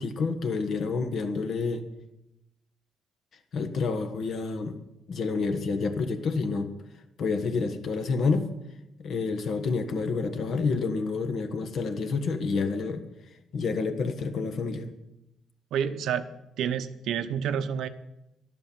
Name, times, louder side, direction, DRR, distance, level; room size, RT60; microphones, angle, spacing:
voice 1, 0.0-1.8 3.5-4.8 5.1-6.7 7.2-8.5 9.0-13.0 13.5-14.9, left 4 dB, 50° left, 9 dB, 1.4 m, -28 dB
voice 2, 15.7-16.3 16.6-17.9, right 8 dB, 75° right, 11 dB, 0.9 m, -29 dB
12.5 x 11.0 x 7.3 m, 0.89 s
cardioid pair, 175°, 0 cm